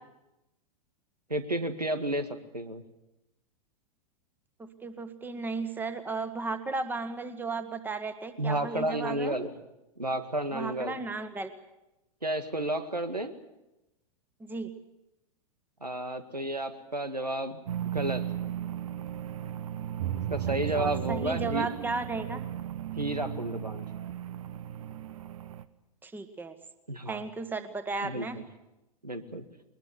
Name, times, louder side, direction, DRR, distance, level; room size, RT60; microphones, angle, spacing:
voice 1, 1.3-2.8 8.4-9.5 10.0-11.0 12.2-13.3 15.8-17.6 17.9-18.5 20.3-21.7 23.0-23.9 26.9-27.3 28.0-28.4 29.0-29.4, right 1 dB, 90° right, 9 dB, 1.9 m, -32 dB
voice 2, 4.6-9.3 10.5-11.5 14.4-14.7 20.7-22.4 26.0-26.5 27.0-28.4, right 3 dB, 10° right, 10 dB, 1.6 m, -35 dB
sound 1, 17.7-25.7, right 11 dB, 60° right, 1.2 m, -35 dB
21.5 x 20.5 x 8.0 m, 0.94 s
figure-of-eight pair, 100°, 20 cm